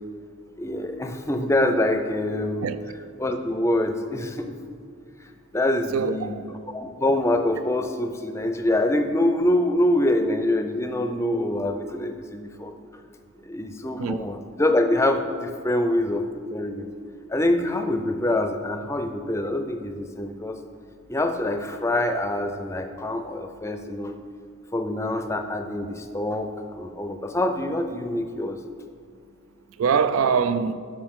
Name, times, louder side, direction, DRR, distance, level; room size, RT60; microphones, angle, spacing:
voice 1, 0.6-2.6 3.2-4.6 5.5-6.4 6.7-12.7 13.4-16.2 16.5-16.9 17.3-20.6 21.1-24.1 24.7-28.6, left 1 dB, 15° left, 0.4 m, -25 dB
voice 2, 5.9-6.4 14.0-14.4 29.8-30.7, right 6 dB, 85° right, 0.4 m, -23 dB
11.0 x 6.3 x 3.7 m
head